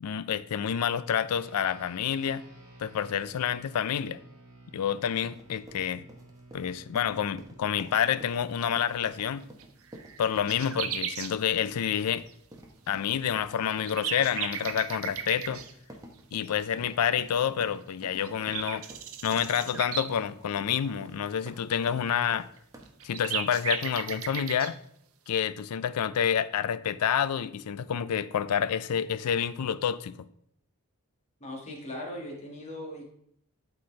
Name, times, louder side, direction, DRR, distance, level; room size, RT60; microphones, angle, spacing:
voice 1, 0.0-2.4 2.8-4.2 4.7-6.0 6.5-9.5 10.2-12.2 12.9-15.6 16.3-18.8 19.2-22.5 23.0-24.8 25.3-30.2, left 8 dB, 90° left, 0.4 m, -28 dB
sound 1, 1.3-10.9, right 2 dB, 35° right, 2.4 m, -54 dB
sound 2, 5.0-23.1, right 1 dB, 15° right, 0.9 m, -50 dB
sound 3, 9.1-9.2 9.6-9.7 9.9-11.3 13.2-13.3 13.7-15.7 17.8-17.9 18.2-20.1 22.6-22.7 22.9-24.7, right 8 dB, 65° right, 0.7 m, -35 dB
voice 2, 31.4-33.0, left 1 dB, 30° left, 1.5 m, -39 dB
11.5 x 4.3 x 3.2 m
head